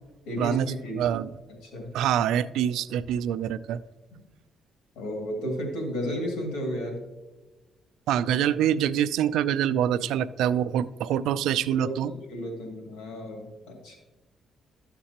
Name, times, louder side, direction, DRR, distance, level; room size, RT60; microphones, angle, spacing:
voice 1, 0.2-1.0 1.5-1.9 4.9-7.0 9.9-10.2 11.8-14.0, equal, 85° left, 1 dB, 2.4 m, -33 dB
voice 2, 1.0-1.3 1.9-3.8 8.1-12.1, right 10 dB, 85° right, 15 dB, 0.3 m, -25 dB
12.5 x 7.4 x 2.9 m, 1.1 s
cardioid pair, 90°, 0 cm